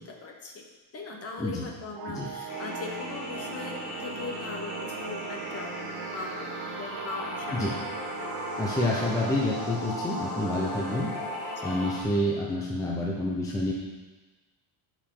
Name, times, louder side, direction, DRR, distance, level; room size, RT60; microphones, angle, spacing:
voice 1, 0.1-0.6 0.9-5.7 6.1-6.5 6.8-7.7, left 4 dB, 30° left, 1 dB, 0.9 m, -39 dB
sound 1, 2.0-13.0, right 8 dB, 45° right, 0.5 m, -40 dB
sound 2, 2.5-12.0, left 2 dB, 50° left, 2.4 m, -37 dB
voice 2, 8.6-11.1 11.6-13.7, left 1 dB, 5° left, -4 dB, 0.6 m, -28 dB
11.0 x 4.9 x 3.7 m, 1.2 s
cardioid pair, 170°, 48 cm